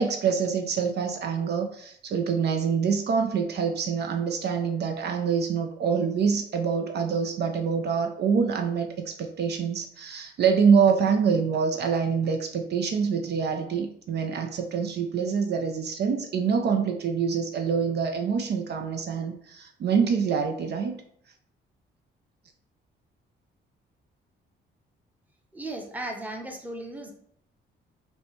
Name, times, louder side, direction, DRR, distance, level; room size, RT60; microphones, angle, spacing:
voice 1, 0.0-21.0, right 6 dB, 55° right, 4 dB, 0.5 m, -25 dB
voice 2, 25.5-27.1, right 1 dB, 10° right, 3 dB, 0.8 m, -36 dB
5.3 x 2.2 x 3.1 m, 0.67 s
cardioid pair, 90°, 20 cm